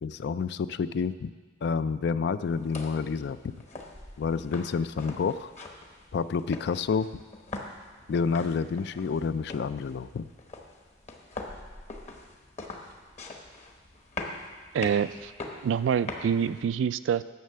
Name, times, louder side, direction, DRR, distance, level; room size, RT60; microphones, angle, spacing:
voice 1, 0.0-1.3 1.6-3.5 4.2-5.5 6.1-7.2 8.1-10.3, left 5 dB, 60° left, 14 dB, 0.3 m, -29 dB
sound 1, 2.4-16.6, left 2 dB, 40° left, 1.0 m, -43 dB
voice 2, 14.7-15.3 15.6-17.2, right 7 dB, 70° right, 15 dB, 0.3 m, -26 dB
9.4 x 6.5 x 6.7 m, 1.5 s
head